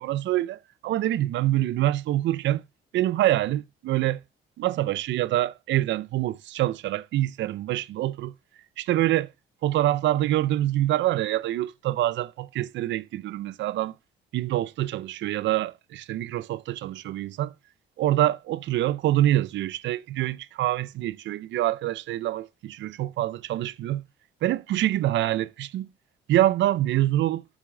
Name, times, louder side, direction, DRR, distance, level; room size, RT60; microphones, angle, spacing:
voice 1, 0.0-2.6 2.9-4.2 4.6-8.3 8.8-9.3 9.6-14.0 14.3-17.5 18.0-24.0 24.4-25.9 26.3-27.4, right 14 dB, 75° right, 0.5 m, -25 dB
11.5 x 4.0 x 3.7 m
cardioid pair, 100°, 19 cm